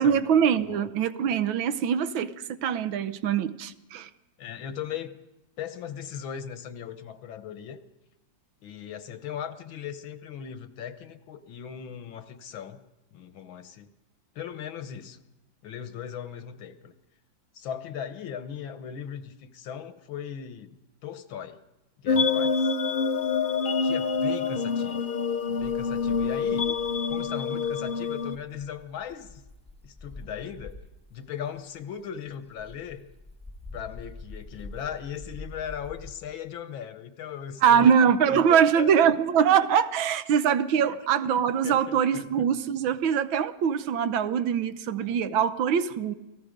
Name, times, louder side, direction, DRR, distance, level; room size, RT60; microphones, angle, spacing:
voice 1, 0.0-2.3 2.6-4.1 37.6-46.1, right 8 dB, 85° right, 11 dB, 1.7 m, -23 dB
voice 2, 4.4-5.2 5.6-7.8 8.6-12.8 13.1-13.9 14.4-15.2 15.6-16.9 17.5-20.8 21.0-21.6 22.0-22.8 23.8-25.1 25.5-26.7 27.1-29.4 29.8-30.8 31.1-33.1 33.7-37.9 38.5-39.1 40.9-41.3 41.6-42.5 45.0-45.2, left 8 dB, 90° left, 11 dB, 1.9 m, -38 dB
sound 1, 22.1-28.4, left 5 dB, 60° left, 0.5 m, -26 dB
sound 2, 25.6-31.1 31.5-36.1, left 2 dB, 5° left, 1.6 m, -46 dB
29.0 x 19.0 x 5.2 m, 0.97 s
omnidirectional pair, 2.1 m